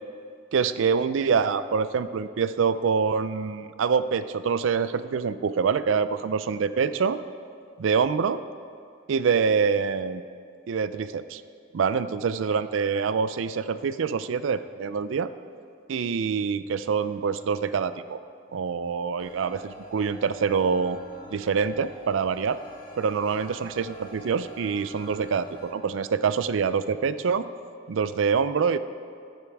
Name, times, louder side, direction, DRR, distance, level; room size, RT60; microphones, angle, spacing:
voice 1, 0.5-7.2 7.8-8.4 9.1-10.2 10.7-11.4 11.7-15.3 15.9-18.2 18.5-21.0 21.3-22.6 23.0-27.5 27.9-28.8, right 6 dB, 85° right, 14 dB, 0.4 m, -25 dB
sound 1, 19.2-25.7, equal, 20° left, 1.7 m, -47 dB
14.0 x 8.5 x 3.5 m, 2.4 s
head